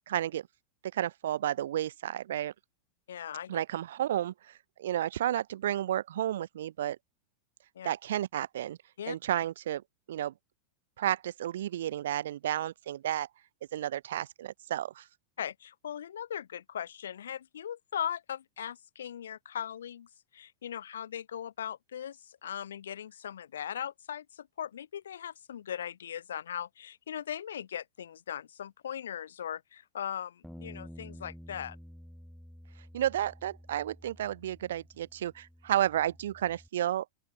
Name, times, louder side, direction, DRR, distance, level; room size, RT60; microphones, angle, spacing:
voice 1, 0.1-0.5 0.9-2.5 3.5-7.0 7.8-8.8 9.1-9.8 10.1-10.3 11.0-13.3 13.7-15.1 32.9-37.1, right 12 dB, 60° right, 0.3 m, -32 dB
voice 2, 3.1-3.6 7.8-7.9 9.0-9.2 15.4-20.1 20.3-31.8, left 9 dB, 65° left, 0.6 m, -39 dB
Bass guitar, 30.4-36.7, equal, ahead, 1.0 m, -51 dB
open air
figure-of-eight pair, 90°, 0 cm